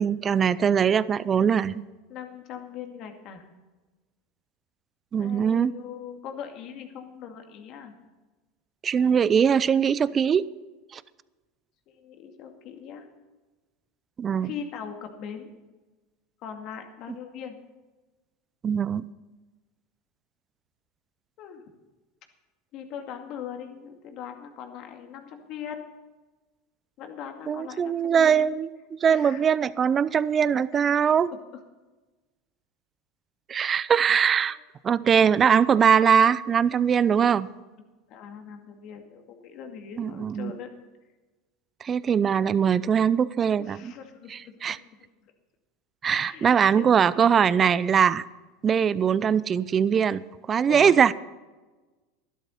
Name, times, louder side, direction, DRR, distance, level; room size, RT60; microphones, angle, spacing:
voice 1, 0.0-1.9 5.1-5.7 8.8-10.5 10.9-11.0 14.2-14.5 18.6-19.0 27.5-31.3 33.5-34.6 34.8-37.5 40.0-40.5 41.8-43.9 44.3-44.8 46.0-48.2 48.6-50.2 50.5-51.1, right 7 dB, 30° right, 18 dB, 0.5 m, -21 dB
voice 2, 2.1-3.5 5.2-7.9 12.0-13.1 14.4-15.5 16.4-17.6 21.4-21.6 22.7-25.8 27.0-28.4 29.1-29.4 30.7-30.9 31.3-31.4 38.1-40.7 43.6-44.6 46.1-46.9 50.7-51.0, left 8 dB, 55° left, 5 dB, 2.2 m, -40 dB
12.0 x 12.0 x 5.7 m, 1.2 s
hypercardioid pair, 90°, 0 cm